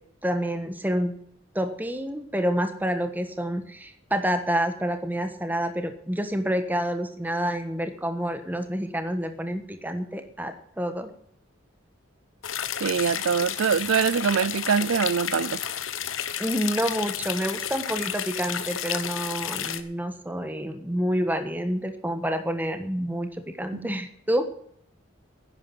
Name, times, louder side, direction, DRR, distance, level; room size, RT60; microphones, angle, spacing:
voice 1, 0.2-1.1 1.5-11.1 16.4-24.5, equal, 10° right, 1.2 m, -28 dB
sound 1, 12.4-19.8, left 9 dB, 80° left, 1.2 m, -31 dB
voice 2, 12.8-15.6 23.7-23.9, right 6 dB, 90° right, 0.5 m, -24 dB
11.0 x 9.9 x 7.5 m
head